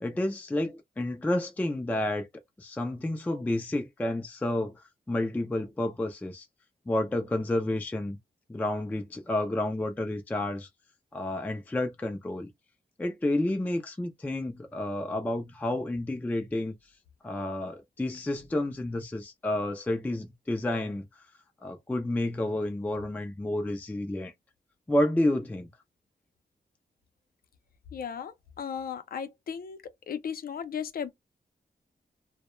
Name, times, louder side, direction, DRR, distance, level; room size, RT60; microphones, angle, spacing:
voice 1, 0.0-2.3 2.6-4.7 5.1-6.5 6.9-8.2 8.5-10.7 11.1-12.5 13.0-16.7 17.2-21.2 21.6-24.3 24.9-25.7, left 1 dB, 10° left, 0.3 m, -30 dB
voice 2, 27.9-29.8 30.1-31.1, left 7 dB, 70° left, 0.5 m, -36 dB
2.2 x 2.1 x 2.9 m
wide cardioid pair, 145°, 16 cm